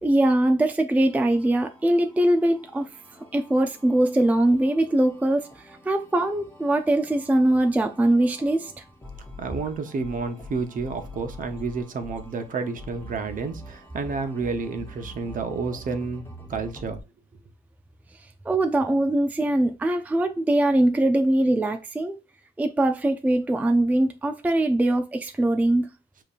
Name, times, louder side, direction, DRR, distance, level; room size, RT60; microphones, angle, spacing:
voice 1, 0.0-2.9 3.3-8.7 18.5-22.2 22.6-25.9, right 1 dB, 10° right, 0.4 m, -22 dB
sound 1, 1.0-17.0, equal, 15° left, 1.3 m, -45 dB
voice 2, 9.4-17.0, right 4 dB, 45° right, 0.8 m, -30 dB
5.2 x 2.9 x 2.4 m
cardioid pair, 95°, 19 cm